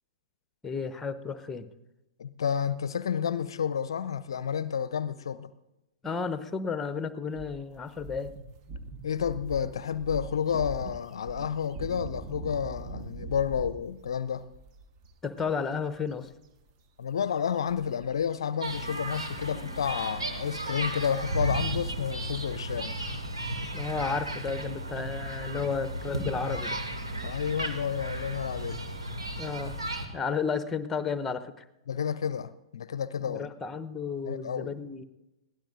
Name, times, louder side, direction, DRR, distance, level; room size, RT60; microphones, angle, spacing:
voice 1, 0.6-1.7 6.0-8.3 15.2-16.3 23.7-26.8 29.3-29.8 30.1-31.6 33.3-35.0, left 5 dB, 10° left, 0.8 m, -32 dB
voice 2, 2.2-5.5 9.0-14.5 17.0-23.0 27.2-28.8 31.9-33.5 34.3-34.7, left 7 dB, 60° left, 0.5 m, -30 dB
sound 1, 7.3-18.4 18.7-18.8 19.1-26.9, right 3 dB, 35° right, 1.2 m, -44 dB
sound 2, 18.6-30.1, right 1 dB, 80° right, 2.4 m, -34 dB
22.0 x 16.5 x 2.6 m
figure-of-eight pair, 110°, 3 cm